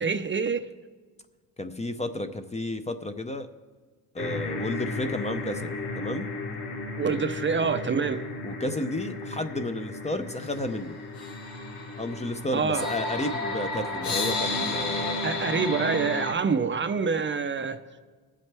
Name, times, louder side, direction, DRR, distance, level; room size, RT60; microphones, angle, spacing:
voice 1, 0.0-0.7 7.0-8.2 12.5-12.9 15.2-17.8, right 5 dB, 30° right, 0.5 m, -26 dB
voice 2, 1.6-3.5 4.1-6.3 8.4-11.0 12.0-15.2, left 1 dB, 15° left, 0.5 m, -32 dB
sound 1, 4.2-16.3, left 2 dB, 70° left, 1.8 m, -33 dB
21.0 x 7.5 x 3.4 m
cardioid pair, 110°, 41 cm